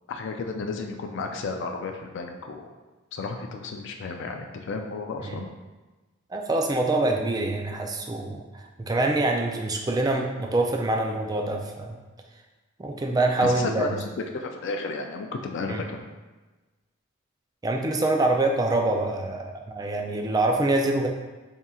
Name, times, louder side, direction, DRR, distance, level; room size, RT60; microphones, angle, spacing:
voice 1, 0.1-2.7 3.1-5.5 13.4-16.1, left 3 dB, 60° left, 4 dB, 0.4 m, -33 dB
voice 2, 6.3-12.0 12.8-14.0 15.7-15.8 17.6-21.1, right 2 dB, 20° right, 2 dB, 0.3 m, -25 dB
4.2 x 3.6 x 2.3 m, 1.2 s
head